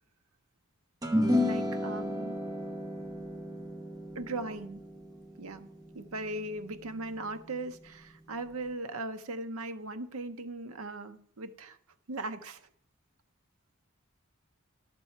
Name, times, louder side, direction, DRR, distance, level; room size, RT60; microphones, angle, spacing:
sound 1, 1.0-7.6, left 1 dB, 20° right, 0.9 m, -33 dB
voice 1, 1.4-2.4 4.1-4.8 5.4-5.7 5.9-11.8 12.1-12.6, right 2 dB, 80° right, 0.7 m, -38 dB
11.5 x 6.9 x 4.4 m
head